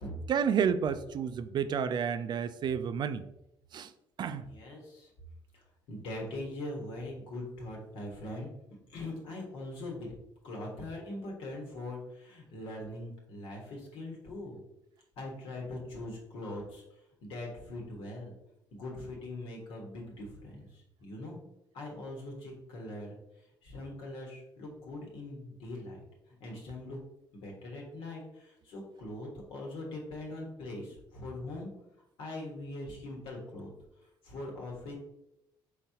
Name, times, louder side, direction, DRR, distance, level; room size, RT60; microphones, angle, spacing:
voice 1, 0.3-3.2 3.7-3.9 4.2-4.5, right 7 dB, 55° right, 12 dB, 0.4 m, -30 dB
voice 2, 4.4-5.1 5.9-8.5 8.9-10.1 10.4-14.6 15.2-16.8 17.2-18.3 18.7-20.7 21.0-21.4 21.7-23.2 23.6-26.0 26.4-27.0 27.3-31.7 32.2-33.7 34.2-34.9, left 1 dB, 80° left, -1 dB, 1.4 m, -41 dB
4.3 x 3.8 x 2.8 m, 0.83 s
supercardioid pair, 70°, 9 cm